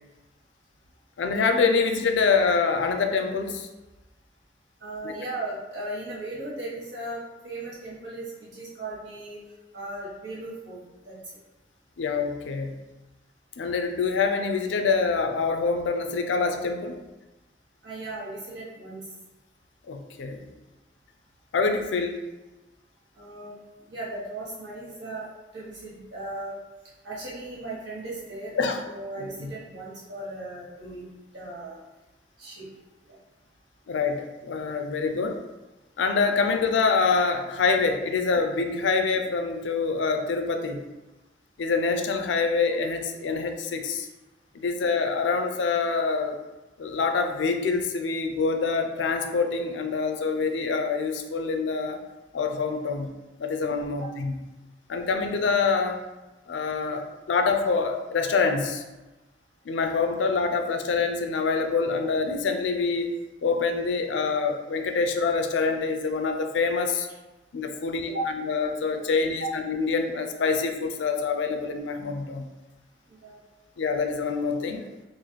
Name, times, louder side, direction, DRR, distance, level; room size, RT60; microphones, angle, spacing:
voice 1, 1.2-3.7 5.0-5.1 12.0-12.8 13.6-17.0 19.9-20.5 21.5-22.2 28.6-28.8 29.2-29.5 33.9-35.4 36.0-40.8 41.6-44.1 44.5-46.4 46.8-52.0 52.3-53.1 53.4-54.4 54.9-56.0 56.5-58.8 59.6-67.1 67.5-72.5 73.8-74.9, left 4 dB, 85° left, 5 dB, 0.4 m, -26 dB
voice 2, 4.8-9.4 9.7-11.2 17.8-19.0 23.2-23.5 23.9-25.3 25.5-26.6 27.0-28.6 28.8-31.1 31.3-31.8 32.4-32.7 33.0-33.1 68.1-68.3 69.4-69.6 73.1-73.4, right 2 dB, 75° right, -7 dB, 1.4 m, -36 dB
3.1 x 2.5 x 3.9 m, 1.1 s
head